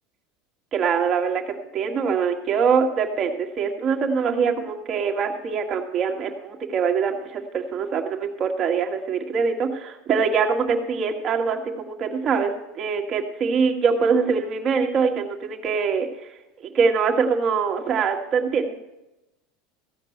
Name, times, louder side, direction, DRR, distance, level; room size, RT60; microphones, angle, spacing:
voice 1, 0.7-16.1 16.6-18.8, right 5 dB, 35° right, 2 dB, 1.7 m, -23 dB
15.5 x 5.3 x 8.5 m, 0.96 s
supercardioid pair, 125°, 0 cm